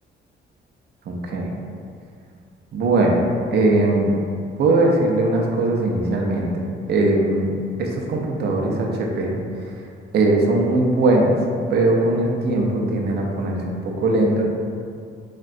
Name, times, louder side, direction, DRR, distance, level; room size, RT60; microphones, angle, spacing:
voice 1, 1.1-1.6 2.7-3.2 3.5-4.2 4.6-9.7 10.1-11.4 11.7-14.4, right 2 dB, 55° right, -1 dB, 0.5 m, -20 dB
3.5 x 2.1 x 2.4 m, 2.3 s
cardioid pair, 90°, 20 cm